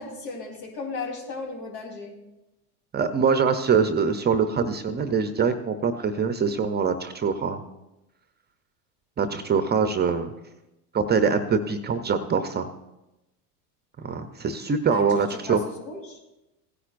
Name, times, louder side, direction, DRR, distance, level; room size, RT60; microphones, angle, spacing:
voice 1, 0.0-2.1 14.8-16.2, left 4 dB, 75° left, -1 dB, 3.7 m, -36 dB
voice 2, 2.9-7.6 9.2-10.3 10.9-12.7 14.0-15.6, right 5 dB, 20° right, 9 dB, 0.6 m, -24 dB
16.5 x 10.0 x 2.5 m, 0.96 s
hypercardioid pair, 95°, 48 cm